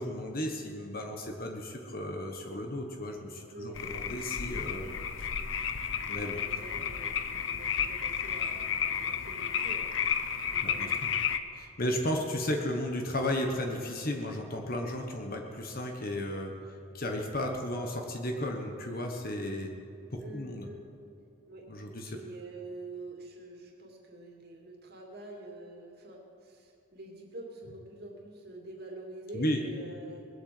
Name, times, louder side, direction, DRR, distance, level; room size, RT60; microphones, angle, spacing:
voice 1, 0.0-4.9 6.0-6.4 10.6-11.1 11.5-16.5 16.9-19.7 20.1-20.7 21.7-22.2 29.3-29.6, left 1 dB, 45° left, 2 dB, 1.3 m, -34 dB
voice 2, 3.5-3.8 4.8-5.0 6.0-9.9 10.5-11.3 20.2-20.8 21.5-21.7 22.1-30.3, right 2 dB, 50° right, 0 dB, 2.6 m, -46 dB
sound 1, 3.8-11.4, left 7 dB, 65° left, 0.8 m, -32 dB
20.5 x 8.0 x 7.8 m, 2.6 s
head